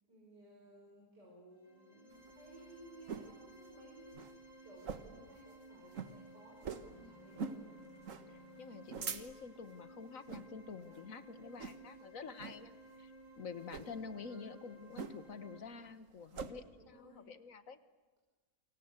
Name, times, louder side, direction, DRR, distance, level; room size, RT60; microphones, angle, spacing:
voice 1, 0.1-7.7 14.2-14.5 16.8-17.3, right 1 dB, 85° right, -1 dB, 5.9 m, -58 dB
sound 1, 1.5-15.6, right 1 dB, 25° right, 4.1 m, -57 dB
sound 2, 2.1-3.4 3.7-3.8 4.1-4.3 4.8-5.2 5.6-5.7 5.9-6.1 6.6-6.9 7.4-7.6 8.0-8.3 8.7-9.6 10.2-10.5 10.9-11.2 11.6-12.0 12.4-12.6 13.6-13.9 15.0-15.4 15.7-16.5, right 6 dB, 55° right, 1.6 m, -43 dB
sound 3, 6.8-9.0, left 3 dB, 30° left, 3.8 m, -61 dB
voice 2, 8.3-12.7 13.0-13.1 13.4-17.8, left 5 dB, 55° left, 12 dB, 1.7 m, -48 dB
28.5 x 25.5 x 8.2 m, 1.3 s
omnidirectional pair, 1.8 m